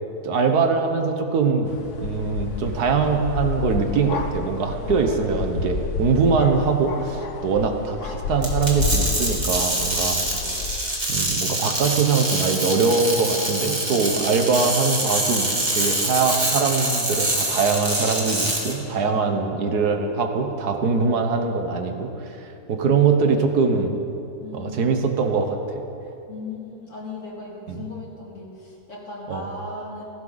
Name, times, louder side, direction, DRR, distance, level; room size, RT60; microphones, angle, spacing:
voice 1, 0.2-1.7 2.0-10.2 11.1-23.9 24.5-25.8 27.7-27.8 29.3-29.5, right 5 dB, 85° right, 5 dB, 1.7 m, -22 dB
sound 1, 1.6-10.8, left 4 dB, 85° left, 1.5 m, -30 dB
voice 2, 4.8-5.4 5.9-6.0 7.8-8.2 9.5-10.5 12.9-13.8 14.1-14.5 19.1-19.3 24.4-25.2 26.3-30.0, left 3 dB, 50° left, -4 dB, 3.0 m, -39 dB
sound 2, 8.4-18.7, right 1 dB, 25° right, 2.4 m, -25 dB
17.5 x 15.5 x 4.0 m, 2.8 s
omnidirectional pair, 1.6 m